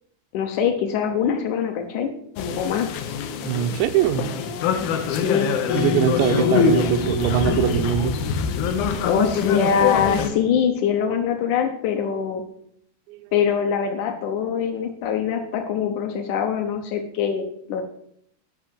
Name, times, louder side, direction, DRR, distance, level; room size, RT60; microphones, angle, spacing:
voice 1, 0.3-2.1 2.6-2.9 5.1-5.5 9.0-12.4 13.3-17.8, left 7 dB, 90° left, 1.7 m, -23 dB
sound 1, 2.4-10.3, left 6 dB, 75° left, 2.5 m, -24 dB
voice 2, 3.4-4.4 5.7-8.2 13.1-13.2, right 11 dB, 85° right, 3.0 m, -22 dB
sound 2, 5.7-9.8, left 6 dB, 55° left, 2.9 m, -29 dB
10.0 x 6.2 x 7.4 m
omnidirectional pair, 4.9 m